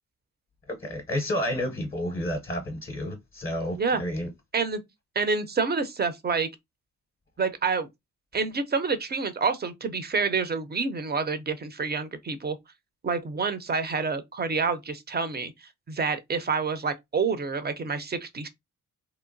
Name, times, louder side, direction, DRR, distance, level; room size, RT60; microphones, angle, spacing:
voice 1, 0.7-4.3, left 1 dB, 25° left, 0.7 m, -30 dB
voice 2, 5.2-6.5 7.4-7.9 8.3-12.6 13.0-18.5, right 4 dB, 30° right, 0.5 m, -28 dB
2.9 x 2.1 x 2.5 m
cardioid pair, 65°, 34 cm